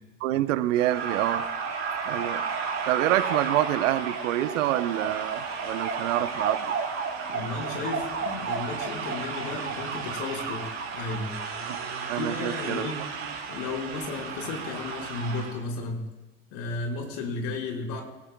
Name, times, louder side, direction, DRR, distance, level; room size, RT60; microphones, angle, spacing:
voice 1, 0.2-1.5 2.1-2.4 2.9-6.7 11.7-11.8 12.1-12.9, right 14 dB, 70° right, 13 dB, 1.0 m, -27 dB
sound 1, 0.7-15.6, right 5 dB, 45° right, 4.6 m, -32 dB
voice 2, 7.3-11.4 12.2-13.0 13.5-16.0 16.5-18.0, left 3 dB, 65° left, -1 dB, 5.3 m, -33 dB
26.0 x 16.5 x 2.3 m, 1.1 s
hypercardioid pair, 75°, 39 cm